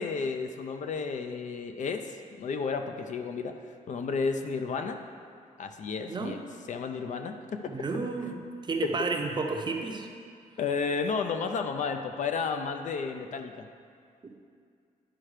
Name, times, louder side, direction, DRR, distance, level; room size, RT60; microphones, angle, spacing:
voice 1, 0.0-3.6 3.9-5.0 5.6-6.4 6.7-7.7 10.6-13.7, left 5 dB, 60° left, 6 dB, 0.5 m, -32 dB
voice 2, 7.7-8.4 8.7-10.1, right 3 dB, 30° right, 3 dB, 0.7 m, -31 dB
10.0 x 4.4 x 4.9 m, 2.3 s
wide cardioid pair, 130°, 15 cm